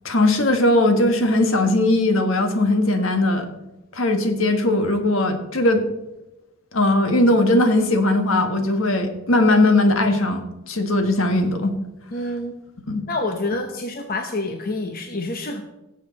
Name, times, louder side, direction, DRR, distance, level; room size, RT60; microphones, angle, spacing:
voice 1, 0.0-3.5 3.9-5.8 6.7-11.8 12.9-13.0, left 2 dB, 65° left, 6 dB, 1.5 m, -19 dB
voice 2, 12.1-12.5 13.1-15.6, left 2 dB, 40° left, 4 dB, 0.9 m, -27 dB
17.5 x 7.3 x 4.1 m, 0.99 s
head